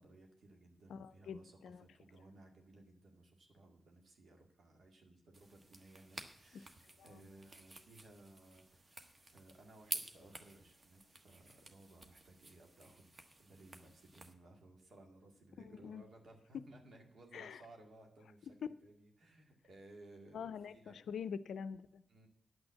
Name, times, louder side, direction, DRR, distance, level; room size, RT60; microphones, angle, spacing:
voice 1, 0.0-13.1 13.4-21.0 22.1-22.3, right 2 dB, 70° right, 3 dB, 2.1 m, -60 dB
voice 2, 0.9-1.9 7.0-7.3 15.6-16.0 17.3-17.6 20.3-22.0, left 7 dB, 85° left, 15 dB, 0.4 m, -45 dB
sound 1, 5.3-14.3, right 2 dB, 45° right, 1.3 m, -51 dB
10.5 x 6.2 x 7.4 m, 0.77 s
supercardioid pair, 45°, 0 cm